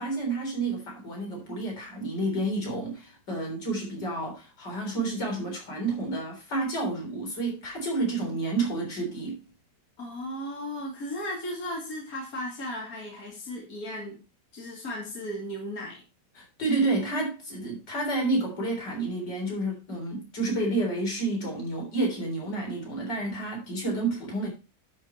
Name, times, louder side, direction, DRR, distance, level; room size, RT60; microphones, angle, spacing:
voice 1, 0.0-9.4 16.3-24.5, right 2 dB, 80° left, 4.5 m, -30 dB
voice 2, 10.0-14.2 14.5-16.0, left 1 dB, 55° left, 3.1 m, -36 dB
11.5 x 5.9 x 4.4 m
omnidirectional pair, 1.8 m